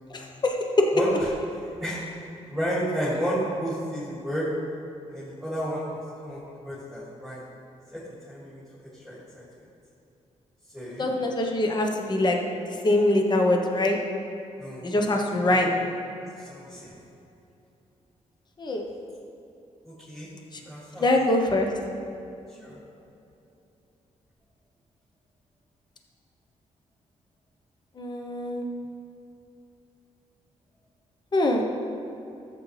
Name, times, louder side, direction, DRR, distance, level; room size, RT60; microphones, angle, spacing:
voice 1, 0.1-0.9 11.0-14.0 14.8-15.7 18.6-18.8 20.5-20.6 21.0-21.7 28.0-28.7 31.3-31.6, left 1 dB, 35° left, 2 dB, 1.0 m, -24 dB
voice 2, 2.5-4.5 5.1-7.4 7.9-8.0 8.3-9.4 10.7-11.1 14.6-14.9 15.1-15.6 16.4-16.9 19.9-20.3 20.7-21.1 22.6-22.8, equal, ahead, -9 dB, 2.3 m, -32 dB
13.5 x 7.7 x 3.3 m, 2.8 s
wide cardioid pair, 115°, 13 cm